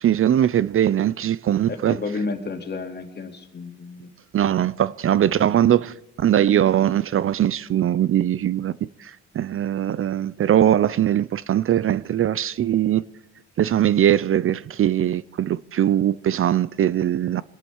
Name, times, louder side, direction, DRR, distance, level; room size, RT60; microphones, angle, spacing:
voice 1, 0.0-2.0 4.3-13.0 13.6-17.4, right 11 dB, 45° right, 0.5 m, -21 dB
voice 2, 1.7-4.1 5.3-5.6, left 3 dB, 35° left, 2.4 m, -32 dB
26.0 x 10.5 x 4.7 m
cardioid pair, 90°, 30 cm